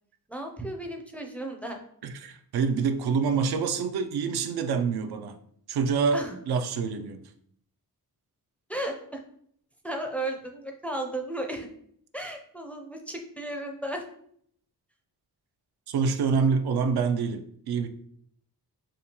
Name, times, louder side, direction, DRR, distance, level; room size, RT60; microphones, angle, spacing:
voice 1, 0.3-1.8 6.1-6.4 8.7-9.2 9.8-11.7 12.1-14.0, right 1 dB, 5° left, 0.4 m, -34 dB
voice 2, 2.0-5.4 5.7-7.3 15.9-17.9, right 5 dB, 80° right, 0.5 m, -26 dB
5.1 x 2.2 x 2.8 m
wide cardioid pair, 120°, 38 cm